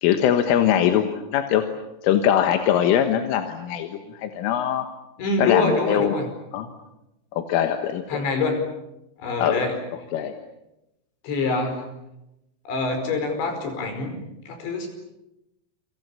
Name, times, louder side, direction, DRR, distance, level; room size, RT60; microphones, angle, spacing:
voice 1, 0.0-1.6 2.0-4.9 5.4-6.1 6.5-6.7 7.3-8.3 9.4-9.6 10.1-10.3, left 10 dB, 85° left, 6 dB, 4.0 m, -22 dB
voice 2, 5.2-6.3 8.1-8.6 9.2-9.7 11.2-11.9 12.7-14.2 14.5-14.9, left 3 dB, 65° left, 6 dB, 7.2 m, -25 dB
29.0 x 25.5 x 7.2 m, 0.89 s
omnidirectional pair, 5.6 m